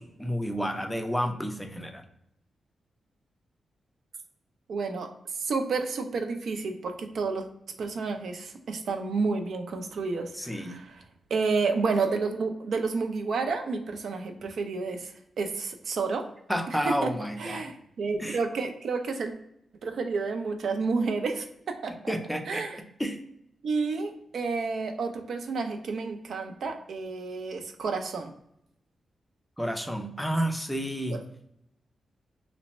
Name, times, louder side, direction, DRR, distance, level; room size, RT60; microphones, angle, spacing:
voice 1, 0.0-2.0 10.4-10.8 16.5-17.7 18.2-18.4 22.1-22.6 23.0-23.2 29.6-31.2, equal, 5° left, 5 dB, 0.4 m, -30 dB
voice 2, 4.7-5.1 5.3-7.4 7.8-11.0 11.3-16.3 16.7-17.1 17.4-19.3 19.8-21.9 22.5-22.8 23.6-28.3 31.1-31.2, right 4 dB, 70° right, 5 dB, 0.5 m, -30 dB
3.2 x 2.1 x 4.0 m, 0.77 s
wide cardioid pair, 130°, 0 cm